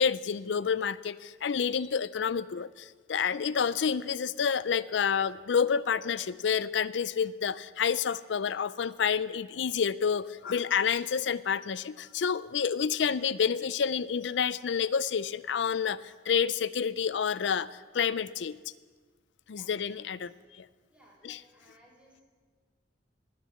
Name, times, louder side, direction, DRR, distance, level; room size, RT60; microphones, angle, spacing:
voice 1, 0.0-17.7 17.9-18.6 19.5-20.7 21.2-21.4, left 7 dB, 80° left, 17 dB, 0.4 m, -29 dB
voice 2, 20.9-22.2, equal, 5° right, -4 dB, 3.9 m, -60 dB
20.0 x 6.7 x 7.6 m, 1.5 s
head